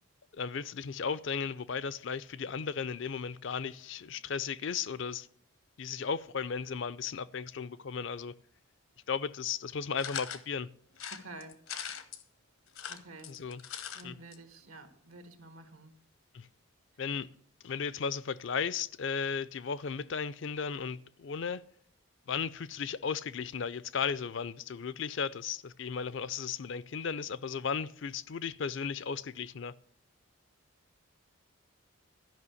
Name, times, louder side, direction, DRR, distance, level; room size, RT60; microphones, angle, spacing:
voice 1, 0.3-5.3 5.8-8.3 9.1-10.7 13.3-13.6 14.0-14.2 16.3-16.5 17.0-17.3 17.6-21.6 22.3-29.7, left 6 dB, 60° left, 0.5 m, -35 dB
sound 1, 10.0-10.4 11.0-12.2 12.7-14.0 14.3-14.4 14.6-14.7, left 8 dB, 80° left, 1.0 m, -41 dB
voice 2, 11.1-11.6 12.9-13.3 13.9-16.0, right 2 dB, 85° right, 1.7 m, -49 dB
12.5 x 5.7 x 8.3 m
head